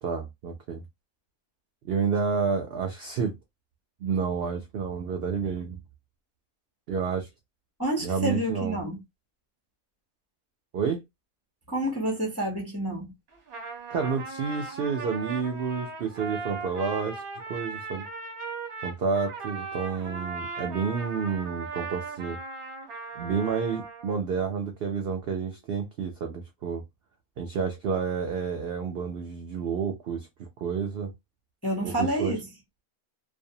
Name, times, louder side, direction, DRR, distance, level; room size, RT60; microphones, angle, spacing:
voice 1, 0.0-0.8 1.8-3.3 4.0-5.8 6.9-7.3 8.0-8.8 10.7-11.0 13.9-17.2 17.5-18.1 18.8-22.4 23.2-26.8 27.4-31.1 31.8-32.3, right 6 dB, 75° right, 0.5 m, -30 dB
voice 2, 7.8-9.0 11.7-13.1 31.6-32.5, right 1 dB, 20° left, 0.4 m, -29 dB
Trumpet, 13.3-24.2, right 4 dB, 45° right, 0.8 m, -38 dB
2.5 x 2.1 x 2.6 m
omnidirectional pair, 1.6 m